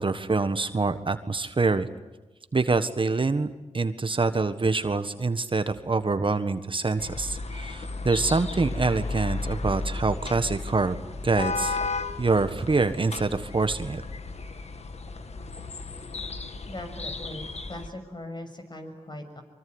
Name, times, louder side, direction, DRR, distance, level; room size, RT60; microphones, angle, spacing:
voice 1, 0.0-1.9 2.5-3.5 3.7-11.0 11.2-11.8 12.2-14.0, right 3 dB, 45° right, 10 dB, 1.5 m, -25 dB
sound 1, 7.0-17.9, left 3 dB, 65° left, 2.1 m, -34 dB
voice 2, 16.7-17.4 17.7-19.4, left 1 dB, 40° left, 5 dB, 6.7 m, -39 dB
24.0 x 24.0 x 9.7 m, 1.1 s
cardioid pair, 55°, 12 cm